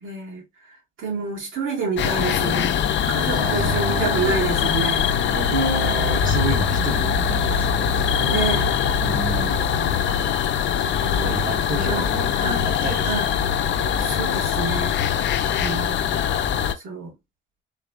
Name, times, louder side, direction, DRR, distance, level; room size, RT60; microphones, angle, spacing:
voice 1, 0.0-0.4 1.0-2.8 3.1-5.1 5.9-6.2 8.2-8.7 9.3-10.1 10.8-11.4 11.7-12.1 12.4-12.7 13.0-13.3 14.0-15.0 15.6-16.1 16.8-17.1, right 4 dB, 80° right, 2.1 m, -29 dB
sound 1, 2.0-16.7, left 8 dB, 65° left, 0.6 m, -22 dB
voice 2, 3.3-4.8 5.3-7.9 9.0-9.7 11.2-13.2, right 3 dB, 45° right, 1.3 m, -30 dB
3.8 x 3.4 x 2.5 m
cardioid pair, 90°, 20 cm